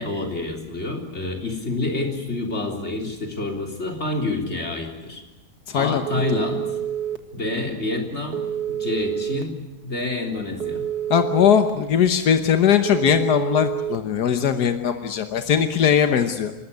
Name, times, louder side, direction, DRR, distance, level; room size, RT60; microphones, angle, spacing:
voice 1, 0.0-5.2 5.7-6.7 7.3-9.5 9.8-10.8, left 2 dB, 45° left, 2 dB, 3.9 m, -28 dB
voice 2, 5.7-6.0 6.3-6.4 11.1-16.5, left 8 dB, 85° left, 7 dB, 1.6 m, -20 dB
Telephone, 6.1-7.2 8.3-9.4 10.6-11.7 12.9-14.0, right 10 dB, 75° right, 2.0 m, -27 dB
29.5 x 13.0 x 9.7 m, 0.99 s
omnidirectional pair, 1.7 m